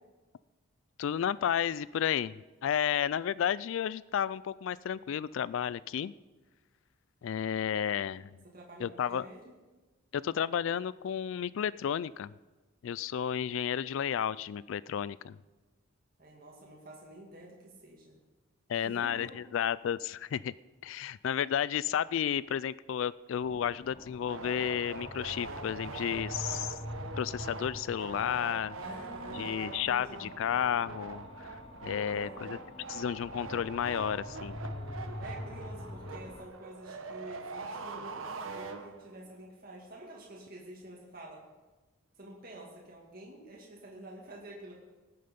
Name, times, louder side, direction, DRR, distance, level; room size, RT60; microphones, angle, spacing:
voice 1, 1.0-6.1 7.2-8.3 8.8-9.3 10.1-12.3 12.8-15.4 18.7-20.5 20.8-26.8 27.2-28.8 29.3-31.6 31.8-32.6 32.9-34.6, left 9 dB, 70° left, 20 dB, 0.3 m, -32 dB
voice 2, 8.5-9.5 16.2-18.1 18.8-19.3 28.8-30.3 31.9-32.6 35.2-41.4 42.2-44.7, right 1 dB, 45° right, -3 dB, 2.2 m, -48 dB
sound 1, 23.4-36.5, left 1 dB, 30° left, 0.7 m, -45 dB
sound 2, 24.3-39.3, right 4 dB, 75° right, 1.1 m, -43 dB
18.5 x 7.8 x 5.3 m, 1.2 s
head